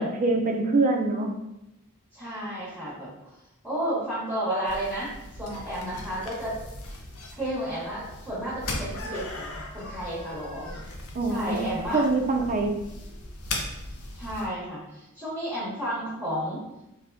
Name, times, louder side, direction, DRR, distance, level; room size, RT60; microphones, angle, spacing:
voice 1, 0.0-1.3 11.1-11.6 11.9-12.8, right 2 dB, 35° right, 3 dB, 0.4 m, -24 dB
voice 2, 2.1-3.1 3.6-5.1 5.4-6.6 7.4-10.7 11.3-12.0 14.1-16.6, right 1 dB, 5° right, -12 dB, 0.9 m, -32 dB
sound 1, 4.6-14.5, left 2 dB, 75° left, 0.6 m, -38 dB
3.4 x 2.6 x 2.5 m, 0.89 s
head